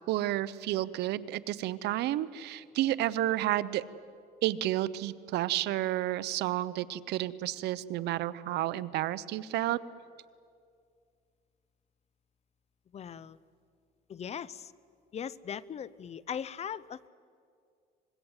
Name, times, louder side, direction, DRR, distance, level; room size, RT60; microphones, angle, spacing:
voice 1, 0.1-3.8 4.4-9.8, right 14 dB, 80° right, 17 dB, 0.8 m, -31 dB
voice 2, 12.9-13.4 14.1-14.7 15.1-17.1, left 8 dB, 40° left, 19 dB, 0.7 m, -39 dB
25.0 x 21.5 x 8.0 m, 2.3 s
cardioid pair, 110°, 17 cm